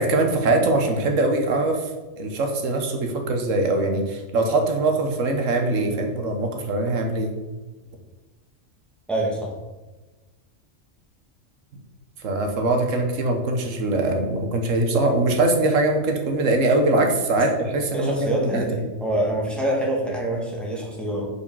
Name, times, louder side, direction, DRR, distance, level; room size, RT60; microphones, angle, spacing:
voice 1, 0.0-1.9 2.2-7.3 12.2-18.6, right 2 dB, 80° right, 4 dB, 1.3 m, -22 dB
voice 2, 9.1-9.5 17.9-21.3, right 1 dB, ahead, -2 dB, 1.2 m, -26 dB
4.9 x 4.9 x 5.4 m, 1.2 s
omnidirectional pair, 1.3 m